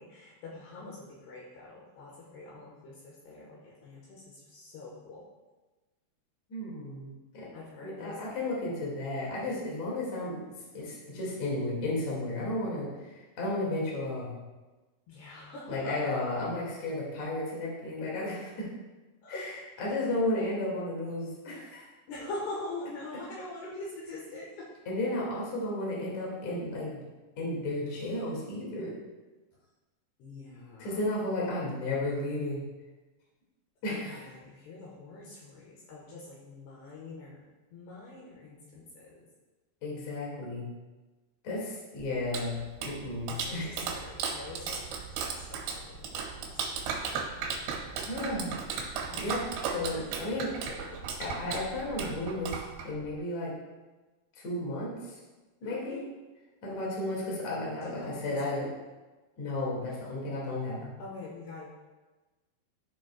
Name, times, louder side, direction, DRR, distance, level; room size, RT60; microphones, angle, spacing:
voice 1, 0.0-5.2 7.5-8.2 15.1-16.0 19.2-19.6 22.1-24.7 29.5-29.7 30.2-31.0 33.9-39.2 43.3-44.8 45.1-46.3 46.7-46.9 49.1-49.2 49.9-51.0 55.6-56.1 57.8-58.7 61.0-61.7, left 2 dB, 75° left, -5 dB, 3.0 m, -44 dB
voice 2, 6.5-7.5 7.8-10.4 10.7-12.9 13.4-14.3 15.7-18.7 19.3-19.5 19.8-21.9 24.9-27.0 27.4-29.0 30.8-32.6 33.8-34.2 39.8-40.7 41.4-43.7 48.1-48.6 49.2-49.4 49.7-50.5 51.2-53.5 54.4-55.2 55.6-56.1 56.6-58.7 59.4-60.9, left 2 dB, 50° left, -5 dB, 2.7 m, -33 dB
Clapping, 42.0-53.2, right 5 dB, 85° right, 3.4 m, -36 dB
13.5 x 5.2 x 2.2 m, 1.2 s
omnidirectional pair, 5.2 m